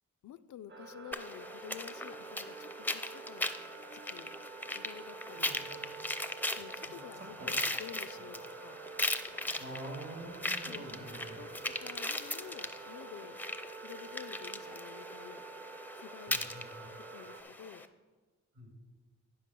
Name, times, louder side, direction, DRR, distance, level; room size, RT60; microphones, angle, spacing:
voice 1, 0.2-3.5 3.9-4.3 4.7-5.8 6.5-8.8 10.6-10.9 11.4-13.4 13.8-15.4 16.0-16.5 17.0-17.9, left 10 dB, 70° left, 15 dB, 0.5 m, -50 dB
sound 1, 0.7-17.4, right 4 dB, 40° right, 0.8 m, -48 dB
sound 2, 1.1-17.9, left 1 dB, 5° left, 0.5 m, -39 dB
sound 3, 1.7-6.0 8.6-13.6, right 1 dB, 75° right, 2.0 m, -63 dB
voice 2, 5.3-5.6 5.9-6.1 6.9-7.5 9.6-11.4 16.3-16.9 18.5-18.7, right 1 dB, 55° right, 1 dB, 2.6 m, -47 dB
10.0 x 5.0 x 6.0 m, 1.3 s
cardioid pair, 70°, 31 cm